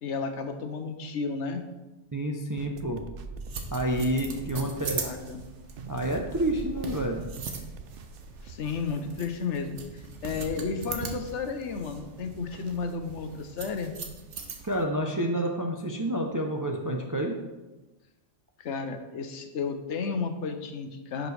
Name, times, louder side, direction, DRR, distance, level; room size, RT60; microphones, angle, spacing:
voice 1, 0.0-1.7 4.5-5.4 8.4-13.9 18.6-21.3, left 5 dB, 75° left, 7 dB, 1.1 m, -33 dB
voice 2, 2.1-3.0 3.7-5.0 5.9-7.2 14.6-17.3, right 1 dB, 25° right, 2 dB, 0.4 m, -29 dB
sound 1, 2.6-8.9, right 4 dB, 60° right, 0.7 m, -43 dB
sound 2, 3.4-14.8, right 5 dB, 80° right, 1.2 m, -40 dB
11.0 x 5.1 x 3.3 m, 1.1 s
omnidirectional pair, 1.2 m